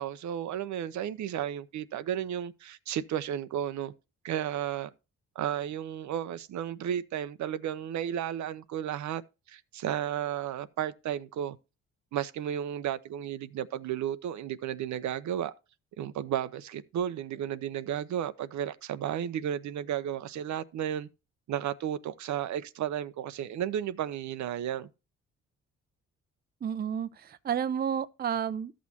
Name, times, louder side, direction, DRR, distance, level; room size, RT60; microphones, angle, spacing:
voice 1, 0.0-3.9 4.2-4.9 5.4-9.2 9.5-11.6 12.1-15.5 16.0-21.1 21.5-24.9, right 10 dB, 70° right, 0.7 m, -33 dB
voice 2, 26.6-28.7, right 8 dB, 30° right, 0.6 m, -31 dB
13.5 x 6.3 x 2.8 m
cardioid pair, 90°, 30 cm